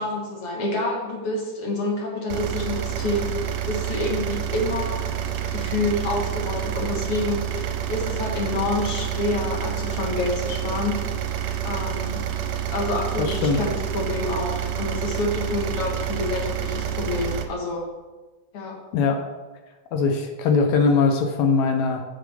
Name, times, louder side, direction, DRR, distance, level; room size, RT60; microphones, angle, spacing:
voice 1, 0.0-3.4 3.7-5.0 5.5-11.0 11.6-12.2 12.7-17.9 18.5-18.8, left 2 dB, 55° left, -1 dB, 2.3 m, -28 dB
sound 1, 2.3-17.5, right 9 dB, 75° right, 1.8 m, -28 dB
voice 2, 13.2-13.6 18.9-19.2 19.9-22.0, left 4 dB, 75° left, 4 dB, 1.9 m, -21 dB
8.1 x 6.1 x 4.9 m, 1.2 s
omnidirectional pair, 3.5 m